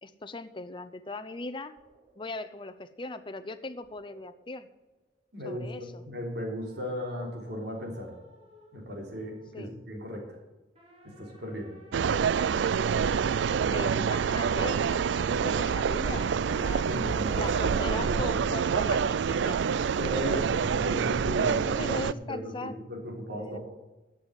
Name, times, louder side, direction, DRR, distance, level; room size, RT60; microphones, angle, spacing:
voice 1, 0.0-1.7 2.2-4.7 5.4-6.0 9.5-9.7 12.1-12.3 13.5-16.9 17.4-19.6 20.1-20.5 20.9-21.0 21.8-22.8 23.3-23.6, left 2 dB, 30° left, 10 dB, 0.7 m, -39 dB
sound 1, 1.8-2.3 2.6-2.8 3.8-4.8 6.6-9.7 10.7-12.6 16.0-18.0 18.3-20.7, right 1 dB, 35° right, 2.8 m, -51 dB
voice 2, 5.3-8.2 8.7-10.4 11.0-11.7 16.8-18.4 20.0-21.9 22.3-23.6, equal, 65° right, 0 dB, 3.7 m, -36 dB
sound 2, 11.9-22.1, right 6 dB, 90° right, 0.4 m, -27 dB
12.5 x 7.0 x 8.1 m, 1.1 s
head